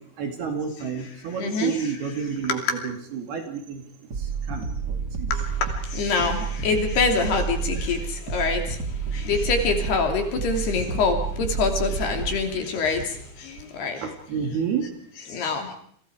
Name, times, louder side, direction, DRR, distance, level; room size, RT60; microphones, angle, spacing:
voice 1, 0.2-3.8 4.2-5.3 14.0-14.9, right 7 dB, 55° right, 4 dB, 3.9 m, -30 dB
voice 2, 1.2-1.9 2.5-2.8 5.3-14.0 15.3-15.7, left 4 dB, 55° left, 4 dB, 4.6 m, -26 dB
sound 1, 4.1-12.4, right 6 dB, 85° right, 0.9 m, -30 dB
29.0 x 27.0 x 5.0 m, 0.63 s
omnidirectional pair, 6.0 m